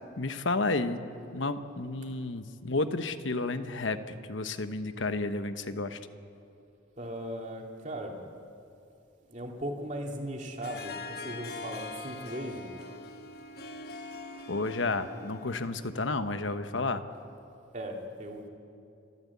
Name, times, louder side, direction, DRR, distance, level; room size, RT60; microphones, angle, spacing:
voice 1, 0.2-1.0 1.3-6.0 14.5-17.0, left 3 dB, 80° left, 10 dB, 1.1 m, -31 dB
voice 2, 7.0-8.2 9.3-12.7 17.7-18.5, right 1 dB, 40° right, 1 dB, 2.6 m, -38 dB
Harp, 10.6-16.1, left 3 dB, 55° left, 1.2 m, -43 dB
29.5 x 13.5 x 8.4 m, 2.6 s
head